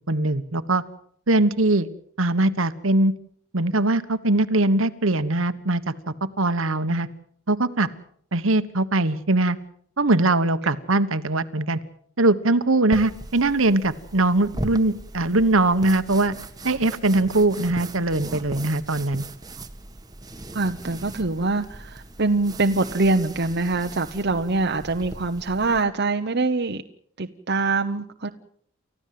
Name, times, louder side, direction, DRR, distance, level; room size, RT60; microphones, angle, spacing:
voice 1, 0.1-0.8 1.3-1.9 2.2-3.1 3.5-5.9 6.4-7.1 7.5-7.9 8.3-9.6 10.0-11.8 12.2-16.3 16.6-19.3, right 2 dB, 70° right, 11 dB, 1.3 m, -21 dB
sound 1, 12.9-25.8, right 1 dB, 20° right, 1.5 m, -38 dB
voice 2, 20.5-26.8 27.2-28.3, right 3 dB, 50° right, 5 dB, 1.0 m, -24 dB
30.0 x 14.5 x 7.7 m, 0.64 s
head